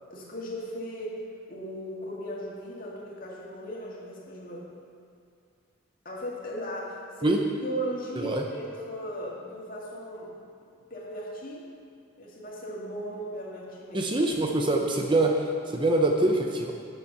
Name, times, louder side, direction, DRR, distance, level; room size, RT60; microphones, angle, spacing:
voice 1, 0.1-1.2 1.5-4.7 6.0-7.3 7.6-10.3 10.9-11.7 12.2-14.0, equal, 40° left, -5 dB, 2.1 m, -37 dB
voice 2, 8.2-8.5 13.9-16.7, right 2 dB, 25° right, 2 dB, 0.6 m, -24 dB
10.0 x 7.0 x 6.7 m, 2.3 s
head